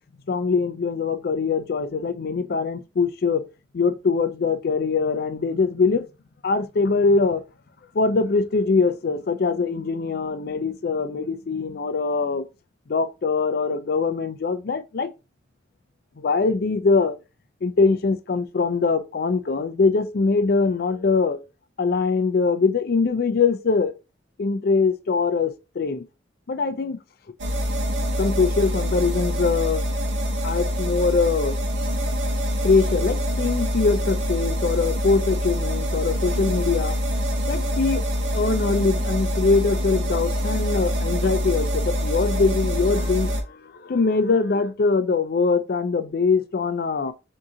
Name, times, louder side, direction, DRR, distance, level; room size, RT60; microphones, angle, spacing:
voice 1, 0.3-3.4 3.7-6.1 6.4-7.4 7.9-12.4 12.9-15.1 16.2-17.2 17.6-21.4 21.8-23.9 24.4-26.0 26.5-27.0 28.2-29.8 30.4-31.6 32.6-37.0 37.5-38.0 38.3-47.1, left 4 dB, 55° left, 0.4 m, -22 dB
sound 1, 27.4-43.4, equal, 85° right, 0.8 m, -25 dB
3.7 x 2.8 x 3.7 m
head